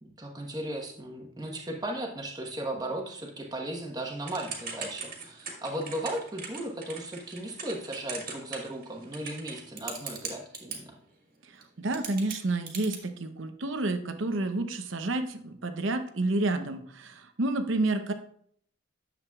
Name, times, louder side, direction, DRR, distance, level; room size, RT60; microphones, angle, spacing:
voice 1, 0.0-10.9, right 1 dB, 20° right, 1 dB, 1.2 m, -36 dB
Typing / Telephone, 4.3-10.8 11.6-11.7 11.9-13.0, right 5 dB, 45° right, 1.7 m, -39 dB
voice 2, 11.8-18.1, right 2 dB, 85° right, 8 dB, 0.8 m, -29 dB
9.9 x 7.4 x 2.4 m, 0.64 s
head